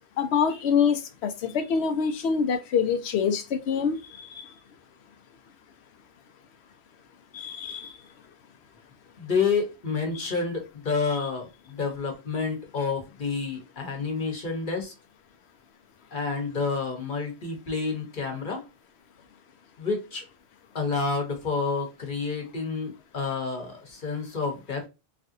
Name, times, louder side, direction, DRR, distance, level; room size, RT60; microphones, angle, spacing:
voice 1, 0.2-4.5 7.3-7.9 10.2-10.3, left 6 dB, 85° left, 0.9 m, -26 dB
voice 2, 9.2-14.9 16.1-18.6 19.8-20.2 20.7-24.8, left 4 dB, 50° left, 1.0 m, -29 dB
3.2 x 2.5 x 2.6 m
omnidirectional pair, 1.1 m